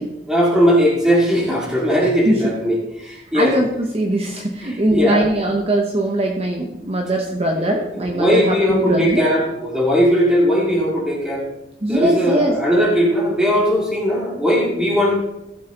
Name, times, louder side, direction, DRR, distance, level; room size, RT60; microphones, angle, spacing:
voice 1, 0.3-3.6 4.6-5.3 7.5-11.5 11.9-15.2, equal, 5° right, -3 dB, 2.6 m, -18 dB
voice 2, 3.3-9.3 11.8-12.6, right 1 dB, 35° right, 2 dB, 1.0 m, -21 dB
15.0 x 7.7 x 3.8 m, 0.94 s
head